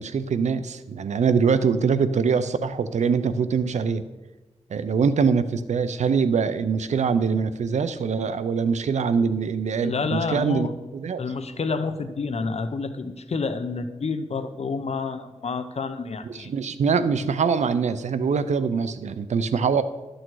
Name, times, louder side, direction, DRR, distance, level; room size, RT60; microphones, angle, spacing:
voice 1, 0.0-4.0 4.7-11.2 16.2-19.8, right 5 dB, 90° right, 13 dB, 0.5 m, -23 dB
voice 2, 9.8-10.7 11.2-16.5 19.7-19.8, left 4 dB, 65° left, 9 dB, 0.8 m, -29 dB
12.0 x 6.4 x 4.7 m, 1.1 s
cardioid pair, 60°, 12 cm